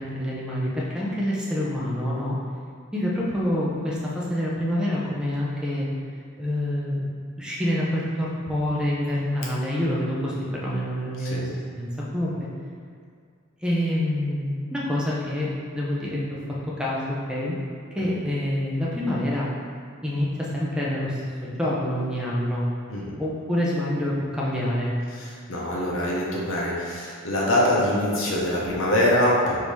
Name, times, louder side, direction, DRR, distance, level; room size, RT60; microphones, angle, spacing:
voice 1, 0.0-2.4 2.9-5.9 6.4-7.1 7.4-11.5 11.8-12.5 13.6-16.4 16.8-17.0 17.3-17.5 17.9-19.5 20.0-22.6 23.2-24.9, left 1 dB, 5° right, -6 dB, 0.5 m, -27 dB
voice 2, 25.1-29.6, left 1 dB, 65° left, -5 dB, 0.8 m, -24 dB
3.5 x 2.7 x 4.6 m, 2.2 s
head